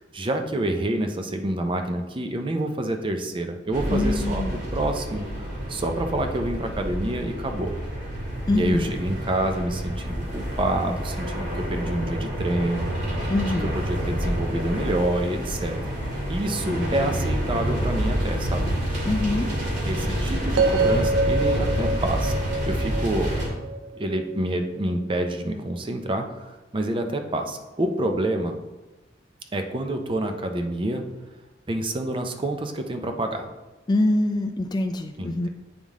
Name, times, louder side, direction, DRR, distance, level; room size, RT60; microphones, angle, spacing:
voice 1, 0.1-5.2 5.7-7.7 8.5-12.9 13.5-15.8 16.3-18.7 19.8-23.3 23.9-28.6 29.5-31.0 31.7-33.5 35.2-35.5, right 1 dB, 30° right, 5 dB, 0.5 m, -28 dB
sound 1, 3.7-23.5, equal, 65° right, 2.2 m, -28 dB
voice 2, 3.9-4.6 8.5-8.9 13.3-13.7 16.7-17.0 19.0-19.5 33.9-35.5, left 2 dB, 25° left, 6 dB, 0.3 m, -24 dB
sound 2, 20.6-24.7, right 3 dB, 90° right, 0.5 m, -26 dB
8.6 x 3.6 x 3.6 m, 1.1 s
head